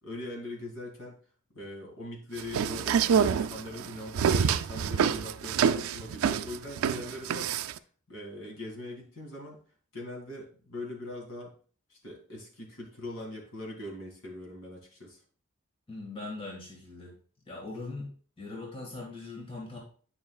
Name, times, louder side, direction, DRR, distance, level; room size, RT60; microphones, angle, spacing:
voice 1, 0.0-1.2 1.5-7.6 8.1-9.6 9.9-11.5 11.9-15.2, left 1 dB, 70° left, -1 dB, 2.3 m, -41 dB
sound 1, 2.4-7.8, right 7 dB, 85° right, 0.3 m, -26 dB
voice 2, 15.9-17.1 17.5-18.1 18.4-19.8, left 2 dB, 25° left, -2 dB, 1.7 m, -40 dB
9.4 x 5.5 x 2.3 m, 0.43 s
head